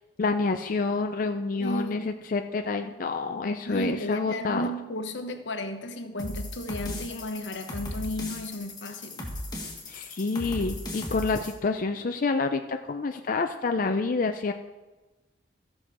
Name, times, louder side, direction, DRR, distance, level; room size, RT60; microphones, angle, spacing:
voice 1, 0.2-4.7 9.9-14.5, left 3 dB, 50° left, 0.5 m, -28 dB
voice 2, 1.6-2.2 3.7-9.3, equal, 85° left, 1.0 m, -34 dB
sound 1, 6.2-11.5, left 1 dB, 25° left, 1.8 m, -37 dB
14.5 x 6.2 x 4.9 m
head